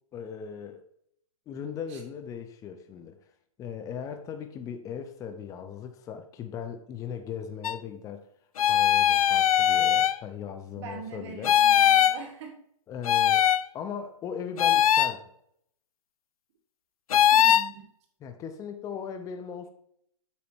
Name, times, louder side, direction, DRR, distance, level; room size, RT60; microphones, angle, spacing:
voice 1, 0.1-0.8 1.5-3.2 3.6-8.3 8.6-11.6 12.9-13.5 13.7-15.2 18.2-19.7, left 7 dB, 20° left, 0.8 m, -38 dB
sound 1, 7.6-7.8 8.6-10.2 11.4-12.2 13.0-13.6 14.6-15.1 17.1-17.7, left 10 dB, 75° left, 0.5 m, -21 dB
voice 2, 10.8-12.6 17.3-17.9, right 6 dB, 50° right, 2.3 m, -42 dB
8.7 x 6.0 x 3.0 m
hypercardioid pair, 140°, 18 cm